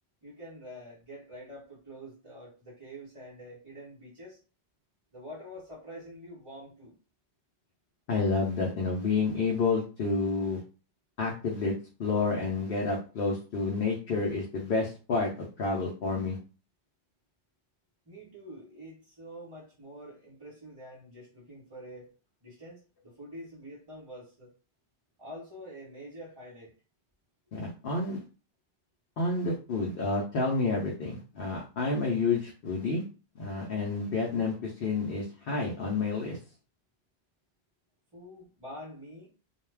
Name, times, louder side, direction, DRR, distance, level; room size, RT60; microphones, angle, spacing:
voice 1, 0.2-4.4 5.1-6.9 18.0-22.1 22.4-24.5 25.2-26.7 38.1-39.3, equal, 25° right, -9 dB, 0.9 m, -46 dB
voice 2, 8.1-10.6 11.2-11.7 12.0-16.4 27.5-28.2 29.2-33.0 33.4-36.4, left 3 dB, 65° left, -2 dB, 0.8 m, -29 dB
2.3 x 2.2 x 3.2 m, 0.35 s
omnidirectional pair, 1.1 m